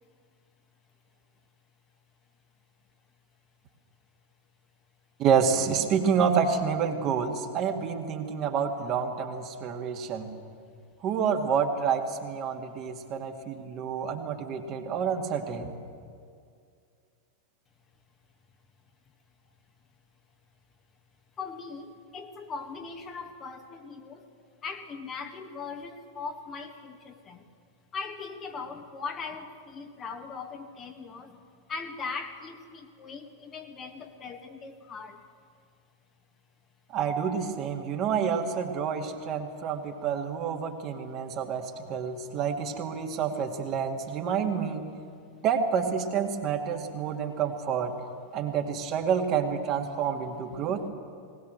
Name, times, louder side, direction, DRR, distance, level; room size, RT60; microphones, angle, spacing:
voice 1, 5.2-10.3 11.0-15.8 36.9-44.9 45.4-48.0 48.3-50.8, right 7 dB, 35° right, 3 dB, 2.1 m, -28 dB
voice 2, 21.4-24.3 24.6-27.5 27.9-31.4 31.7-35.2, left 4 dB, 25° left, 5 dB, 1.7 m, -39 dB
20.0 x 19.0 x 7.9 m, 2.3 s
figure-of-eight pair, 90°, 0 cm